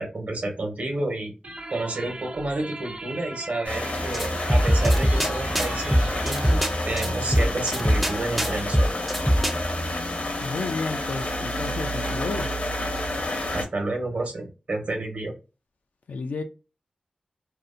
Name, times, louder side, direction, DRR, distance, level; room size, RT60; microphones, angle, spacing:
voice 1, 0.0-1.3 1.7-8.9 13.5-15.3, right 2 dB, 70° right, 1.1 m, -30 dB
sound 1, 1.4-6.8, right 2 dB, 50° right, 0.6 m, -39 dB
sound 2, 3.6-13.6, left 1 dB, 60° left, 0.7 m, -30 dB
sound 3, 3.9-9.6, equal, ahead, 0.4 m, -24 dB
voice 2, 10.4-12.5 16.1-16.4, left 4 dB, 85° left, 0.3 m, -31 dB
2.6 x 2.1 x 2.5 m
cardioid pair, 55°, 3 cm